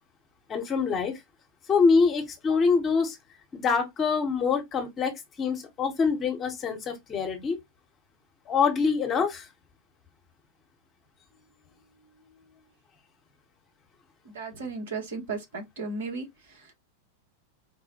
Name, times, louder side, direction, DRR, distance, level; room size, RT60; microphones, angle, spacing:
voice 1, 0.5-1.2 1.7-3.2 3.5-7.6 8.5-9.5, left 5 dB, 25° left, 1.0 m, -25 dB
voice 2, 11.4-12.7 14.2-16.7, right 4 dB, 60° right, 1.1 m, -37 dB
4.2 x 2.1 x 2.8 m
figure-of-eight pair, 90°, 0 cm